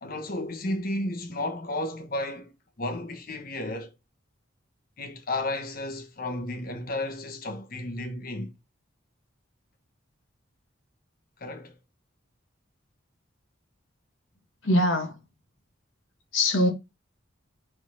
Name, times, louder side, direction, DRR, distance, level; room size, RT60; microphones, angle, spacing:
voice 1, 0.0-3.9 5.0-8.5 11.4-11.7, left 1 dB, 45° left, 1.2 m, -33 dB
voice 2, 14.6-15.2 16.3-16.7, left 1 dB, 80° left, 1.8 m, -22 dB
4.8 x 4.3 x 5.7 m
head